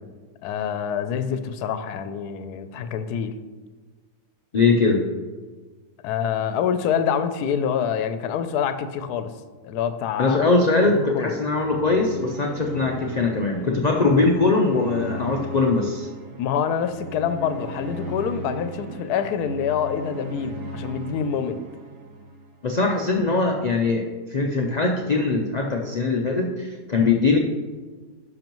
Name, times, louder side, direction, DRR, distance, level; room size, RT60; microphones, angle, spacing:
voice 1, 0.4-3.3 6.0-9.3 9.6-10.4 10.9-11.4 16.4-21.6, left 7 dB, 80° left, 10 dB, 1.1 m, -26 dB
voice 2, 4.5-5.1 10.2-16.1 22.6-27.4, left 3 dB, 65° left, 1 dB, 0.4 m, -21 dB
sound 1, 11.4-22.8, right 1 dB, 70° right, 1.5 m, -37 dB
10.5 x 6.1 x 3.0 m, 1.4 s
omnidirectional pair, 1.6 m